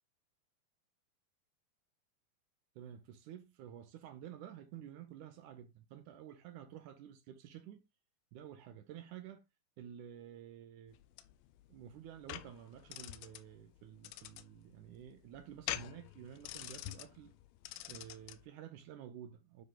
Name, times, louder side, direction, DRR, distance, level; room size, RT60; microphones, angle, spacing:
voice 1, 2.8-7.8 8.3-9.4 9.8-10.9 11.7-17.3 17.9-19.6, right 10 dB, 70° right, 2.0 m, -51 dB
sound 1, 10.9-18.4, left 15 dB, 80° left, 2.2 m, -47 dB
9.5 x 3.2 x 3.8 m
omnidirectional pair, 4.3 m